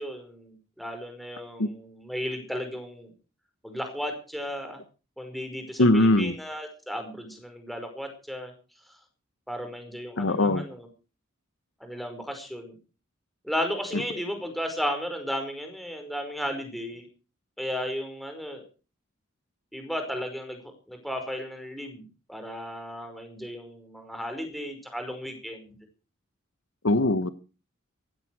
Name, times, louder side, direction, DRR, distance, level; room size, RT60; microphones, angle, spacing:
voice 1, 0.0-3.1 3.6-4.8 5.2-8.5 9.5-10.9 11.8-12.7 13.4-17.1 17.6-18.6 19.7-20.6 20.9-25.8, equal, ahead, 5.1 m, -34 dB
voice 2, 5.8-6.3 10.2-10.6 26.8-27.3, left 2 dB, 70° left, 1.1 m, -21 dB
16.0 x 16.0 x 4.8 m
head